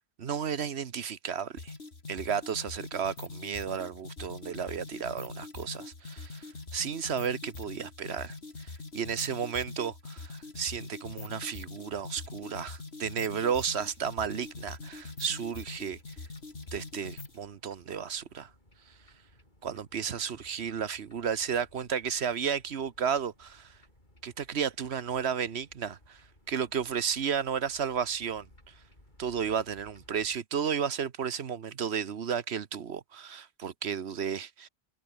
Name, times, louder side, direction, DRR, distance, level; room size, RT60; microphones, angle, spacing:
voice 1, 0.2-1.7 2.1-6.5 6.7-16.0 16.7-18.5 19.6-23.7 24.2-26.2 26.5-28.5 29.2-34.7, right 7 dB, 85° right, 1.3 m, -33 dB
sound 1, 1.6-17.4, left 3 dB, 75° left, 3.0 m, -43 dB
sound 2, 13.7-30.4, left 1 dB, 45° left, 7.4 m, -61 dB
omnidirectional pair, 1.1 m